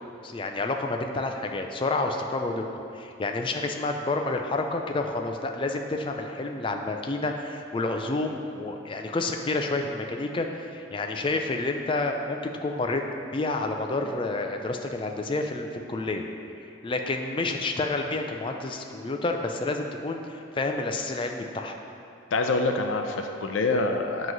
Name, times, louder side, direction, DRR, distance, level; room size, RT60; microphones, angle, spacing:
voice 1, 0.2-13.0 13.3-16.2 16.8-21.8, left 2 dB, 25° left, 4 dB, 0.4 m, -29 dB
voice 2, 22.3-24.3, left 3 dB, 85° left, 4 dB, 0.5 m, -26 dB
7.7 x 3.1 x 5.9 m, 2.6 s
head